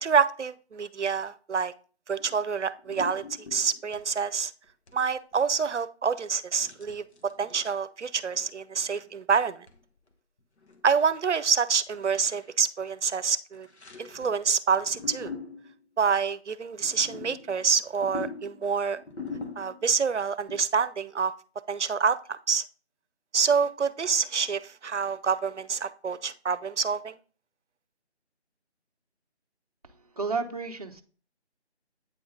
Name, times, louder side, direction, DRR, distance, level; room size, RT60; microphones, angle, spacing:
voice 1, 0.0-1.7 2.1-3.2 3.5-4.5 4.9-9.6 10.8-13.7 14.0-15.3 16.0-19.0 19.6-21.3 21.7-22.6 23.3-27.1, right 6 dB, 85° right, 15 dB, 0.6 m, -27 dB
sound 1, 2.2-2.4 2.8-4.1 4.6-5.0 5.3-5.4 6.6-7.7 8.2-8.5 8.8-9.1 9.7-9.8 10.1-10.2 10.4-10.8 11.1-11.2 11.9-12.5 13.5-14.4 14.7-15.8 16.7-20.0 20.5-20.6, left 4 dB, 70° left, 1.2 m, -42 dB
voice 2, 29.8-31.0, right 4 dB, 35° right, 3 dB, 0.6 m, -32 dB
8.6 x 3.7 x 3.7 m, 0.39 s
figure-of-eight pair, 160°, 34 cm